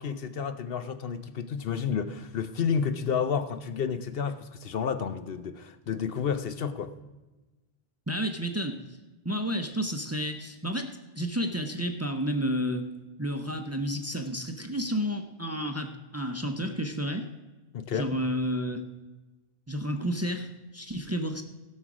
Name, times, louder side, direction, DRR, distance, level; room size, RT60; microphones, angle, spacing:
voice 1, 0.0-6.9 17.7-18.1, left 6 dB, 65° left, 11 dB, 0.9 m, -30 dB
voice 2, 8.1-8.8 9.2-12.9 13.2-17.3 17.9-18.9 19.7-21.4, equal, 15° right, 6 dB, 0.7 m, -31 dB
16.0 x 6.4 x 6.1 m, 1.2 s
omnidirectional pair, 1.1 m